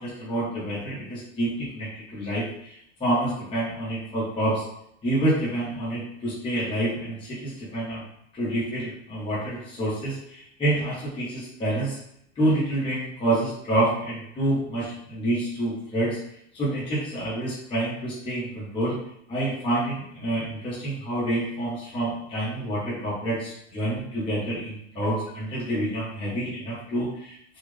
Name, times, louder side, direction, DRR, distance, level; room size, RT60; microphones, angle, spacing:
voice 1, 0.0-4.6 5.0-8.0 8.3-12.0 12.3-16.2 16.5-18.9 19.3-27.4, right 1 dB, 15° left, -10 dB, 1.2 m, -28 dB
4.3 x 2.5 x 3.3 m, 0.74 s
supercardioid pair, 165°, 39 cm